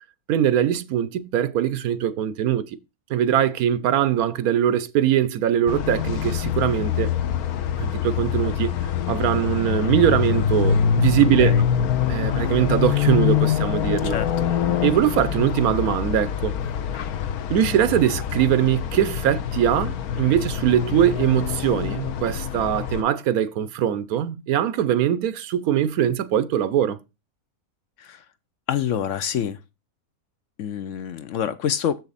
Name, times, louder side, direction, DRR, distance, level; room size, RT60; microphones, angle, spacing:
voice 1, 0.3-2.8 3.1-7.1 7.8-8.7 9.1-11.5 12.1-14.2 14.8-16.6 17.5-27.0, right 10 dB, 80° right, 1.1 m, -22 dB
sound 1, 5.7-23.0, left 8 dB, 85° left, 1.3 m, -25 dB
voice 2, 28.7-29.6 30.6-32.0, left 9 dB, 65° left, 0.8 m, -26 dB
7.0 x 6.5 x 4.0 m
omnidirectional pair, 1.6 m